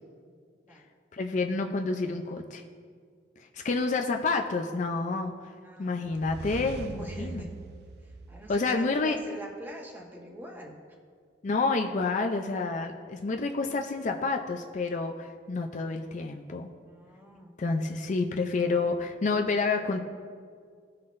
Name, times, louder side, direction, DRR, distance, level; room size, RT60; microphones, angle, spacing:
voice 1, 1.1-2.6 3.4-5.5 5.8-7.4 8.5-9.2 11.4-16.7 17.6-20.0, left 3 dB, 40° left, 4 dB, 0.4 m, -29 dB
voice 2, 5.6-6.1 6.5-7.6 8.0-10.8 16.9-17.5, right 1 dB, 10° right, -1 dB, 1.1 m, -45 dB
sound 1, 6.0-9.0, right 3 dB, 60° right, 0.4 m, -42 dB
17.0 x 5.7 x 2.5 m, 2.1 s
head